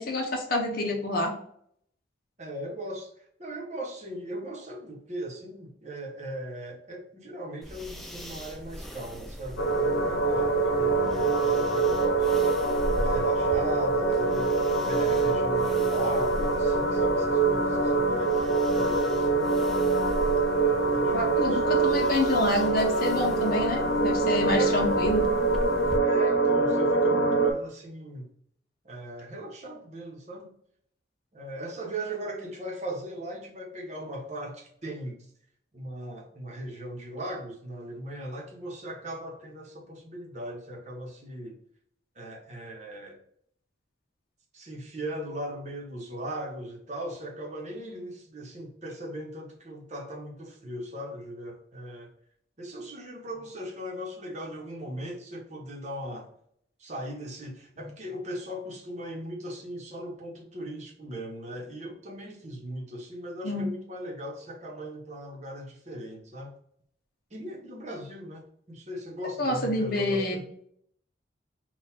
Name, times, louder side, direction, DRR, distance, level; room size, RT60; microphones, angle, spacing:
voice 1, 0.0-1.3 21.1-25.3 63.4-63.7 69.4-70.4, left 1 dB, 50° left, 0 dB, 0.7 m, -27 dB
voice 2, 2.4-3.1 3.4-12.4 13.0-19.5 20.7-21.9 24.5-25.0 26.0-28.3 28.8-30.5 31.3-35.3 35.7-41.6 42.1-43.2 44.5-52.1 52.6-56.3 56.8-66.5 67.3-70.4, right 1 dB, 35° right, -1 dB, 1.0 m, -38 dB
sound 1, 7.6-26.0, equal, ahead, 0.4 m, -40 dB
sound 2, 9.6-27.5, right 3 dB, 80° left, 0.8 m, -24 dB
3.9 x 2.4 x 4.3 m, 0.67 s
head